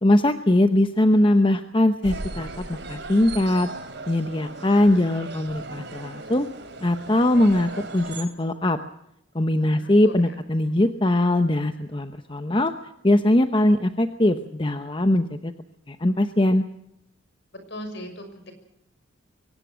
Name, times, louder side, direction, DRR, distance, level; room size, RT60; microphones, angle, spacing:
voice 1, 0.0-3.7 4.1-6.5 6.8-8.8 9.3-12.7 13.0-15.5 15.9-16.6, left 1 dB, 25° left, 8 dB, 0.9 m, -21 dB
sound 1, 2.0-8.2, right 2 dB, 60° right, 3.0 m, -37 dB
voice 2, 17.7-18.5, equal, 60° left, 8 dB, 6.0 m, -38 dB
23.5 x 18.0 x 6.3 m, 0.80 s
head